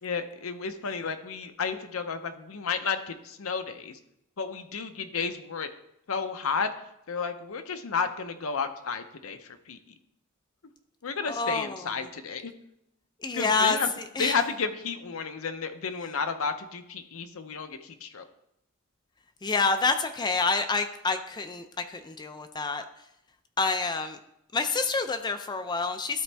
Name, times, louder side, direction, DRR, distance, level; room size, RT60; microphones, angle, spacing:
voice 1, 0.0-4.0 4.4-5.7 6.1-6.7 7.1-9.8 11.0-12.5 13.3-13.9 14.2-18.3, left 5 dB, 80° left, 8 dB, 0.7 m, -32 dB
voice 2, 11.3-11.9 13.2-13.8 14.2-14.3 19.4-22.8 23.6-24.2 24.5-26.2, left 4 dB, 20° left, 7 dB, 0.4 m, -27 dB
12.5 x 4.2 x 3.4 m, 0.79 s
head